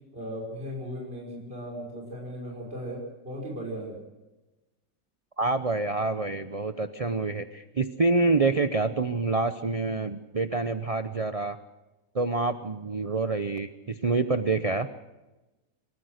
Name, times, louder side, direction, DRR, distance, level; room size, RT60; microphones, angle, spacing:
voice 1, 0.1-4.0, equal, 30° right, -2 dB, 5.9 m, -37 dB
voice 2, 5.4-11.6 12.1-14.9, right 3 dB, 65° right, 10 dB, 0.3 m, -27 dB
28.5 x 14.0 x 6.5 m, 1.1 s
omnidirectional pair, 1.8 m